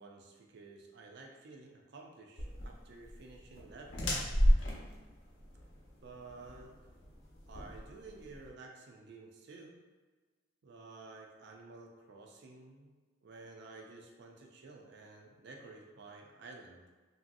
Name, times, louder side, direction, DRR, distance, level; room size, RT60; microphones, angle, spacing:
voice 1, 0.0-4.3 6.0-6.7 7.5-9.8 10.6-12.9 13.2-16.8, right 3 dB, 60° right, 1 dB, 0.4 m, -52 dB
sound 1, 2.4-8.5, equal, 85° left, 0.7 m, -33 dB
3.0 x 2.7 x 2.5 m, 1.3 s
head